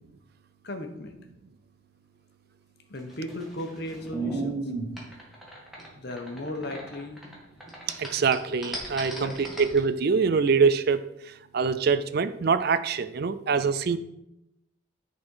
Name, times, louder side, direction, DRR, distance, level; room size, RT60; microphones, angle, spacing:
voice 1, 0.6-1.2 2.9-4.6 5.9-7.2 9.1-9.4, left 1 dB, 50° left, 5 dB, 1.1 m, -36 dB
sound 1, 3.0-7.3 7.6-9.8, right 2 dB, ahead, 1.9 m, -35 dB
voice 2, 8.0-11.0 11.5-14.0, right 5 dB, 50° right, 13 dB, 0.4 m, -24 dB
10.5 x 4.3 x 5.6 m, 0.85 s
head